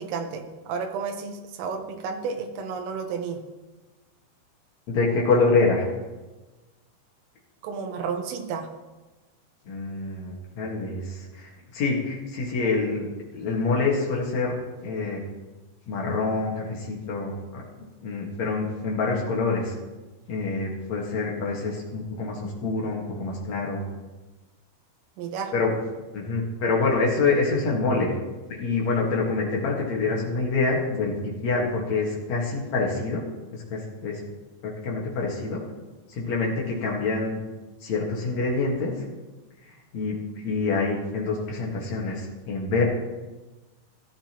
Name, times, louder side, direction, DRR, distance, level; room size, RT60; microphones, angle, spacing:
voice 1, 0.0-3.4 7.6-8.7 25.2-25.5, right 5 dB, 85° right, 4 dB, 3.7 m, -32 dB
voice 2, 4.9-5.8 9.7-13.1 13.3-14.5 14.8-15.2 15.9-17.6 18.0-19.7 20.3-23.8 25.5-25.8 26.1-28.1 28.6-31.1 31.4-33.2 33.7-34.2 34.6-35.6 36.1-37.4 37.8-38.9 39.9-40.2 40.4-42.8, left 3 dB, 60° left, -3 dB, 1.9 m, -26 dB
15.5 x 11.5 x 3.0 m, 1.2 s
omnidirectional pair, 5.6 m